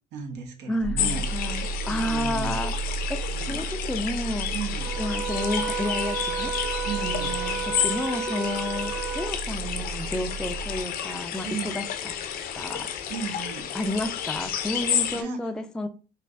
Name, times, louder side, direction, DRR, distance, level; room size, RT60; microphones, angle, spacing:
voice 1, 0.1-1.5 1.9-2.6 3.3-3.6 4.5-4.9 6.8-7.3 11.5-11.8 13.1-13.7 14.7-14.8 15.1-15.4, right 6 dB, 80° right, 4 dB, 0.9 m, -35 dB
voice 2, 0.7-2.7 3.1-4.5 5.0-6.5 7.0-12.1 12.6-12.9 13.7-15.9, left 1 dB, 5° left, 7 dB, 0.3 m, -31 dB
sound 1, 0.8-10.8, right 4 dB, 35° right, 1.2 m, -34 dB
sound 2, 1.0-15.2, left 9 dB, 60° left, 0.5 m, -31 dB
sound 3, 4.8-9.4, right 8 dB, 50° right, 0.8 m, -32 dB
4.4 x 2.5 x 2.4 m, 0.34 s
cardioid pair, 110°, 17 cm